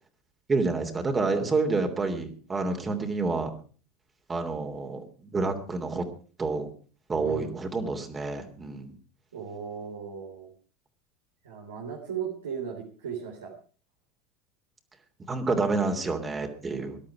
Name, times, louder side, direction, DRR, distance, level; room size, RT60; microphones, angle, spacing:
voice 1, 0.5-3.5 4.3-6.0 6.4-6.7 7.1-8.9 15.3-17.0, right 3 dB, 20° right, 4 dB, 3.0 m, -28 dB
voice 2, 7.1-7.5 9.3-10.5 11.4-13.5 16.8-16.9, right 7 dB, 80° right, -1 dB, 3.4 m, -37 dB
19.0 x 12.0 x 4.9 m, 0.39 s
hypercardioid pair, 80°, 0 cm